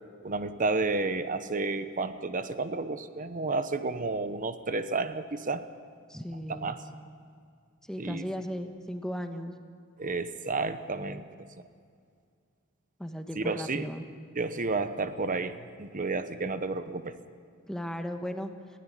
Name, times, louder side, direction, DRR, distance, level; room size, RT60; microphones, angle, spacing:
voice 1, 0.2-5.7 6.5-6.8 8.0-8.3 10.0-11.2 13.4-13.9 14.3-17.2, right 3 dB, 40° right, 11 dB, 0.9 m, -31 dB
voice 2, 6.1-6.8 7.9-9.5 13.0-14.0 17.7-18.5, equal, 5° left, 6 dB, 1.3 m, -36 dB
19.5 x 16.5 x 9.8 m, 2.2 s
head